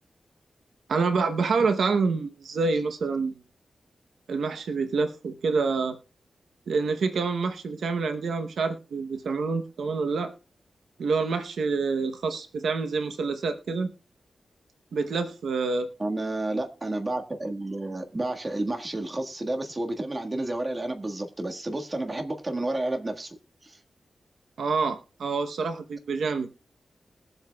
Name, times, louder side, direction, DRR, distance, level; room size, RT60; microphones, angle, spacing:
voice 1, 0.9-3.4 4.3-6.0 6.7-10.3 11.0-13.9 14.9-15.9 24.6-26.5, right 4 dB, 90° right, 7 dB, 0.8 m, -27 dB
voice 2, 16.0-23.4 23.6-23.8, right 2 dB, 30° right, 3 dB, 1.6 m, -31 dB
21.0 x 7.9 x 2.3 m, 0.35 s
cardioid pair, 80°, 0 cm